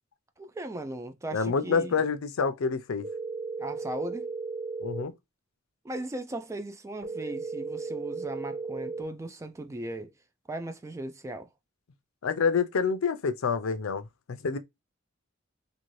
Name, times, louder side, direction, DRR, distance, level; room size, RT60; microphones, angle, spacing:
voice 1, 0.4-2.0 3.6-4.3 5.8-10.1 10.5-11.5, right 1 dB, 15° right, 0.3 m, -37 dB
voice 2, 1.3-3.1 4.8-5.1 12.2-14.6, left 5 dB, 90° left, 0.5 m, -27 dB
sound 1, 3.0-5.0 7.0-9.0, right 3 dB, 50° right, 1.4 m, -35 dB
2.6 x 2.5 x 3.1 m
head